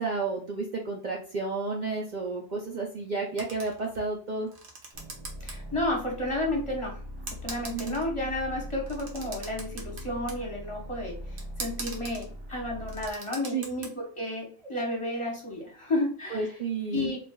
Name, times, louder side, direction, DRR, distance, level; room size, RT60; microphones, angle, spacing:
voice 1, 0.0-4.5 7.7-8.0 13.5-13.6 16.3-17.1, right 3 dB, 55° right, 0 dB, 0.6 m, -31 dB
sound 1, 3.4-4.1 4.4-5.5 5.9-6.0 6.8-6.9 7.3-8.2 8.8-10.4 11.4-12.2 12.7-13.9, right 3 dB, 75° right, 1.2 m, -41 dB
sound 2, 4.9-13.2, equal, 25° right, 0.8 m, -41 dB
voice 2, 5.4-7.0 7.3-16.5 16.9-17.2, left 1 dB, 30° left, -1 dB, 1.0 m, -32 dB
3.2 x 2.5 x 3.6 m, 0.43 s
omnidirectional pair, 1.2 m